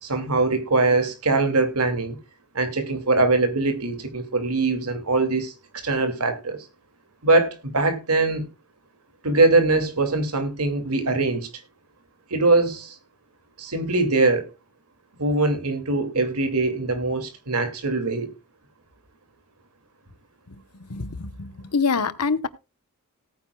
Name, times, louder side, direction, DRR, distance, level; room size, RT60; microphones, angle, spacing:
voice 1, 0.0-2.2 2.5-6.7 7.2-8.5 9.2-11.5 12.3-13.0 13.6-14.5 15.2-18.3, right 3 dB, 85° right, 2.6 m, -22 dB
voice 2, 20.9-22.5, left 4 dB, 90° left, 1.1 m, -25 dB
18.0 x 9.5 x 2.3 m
head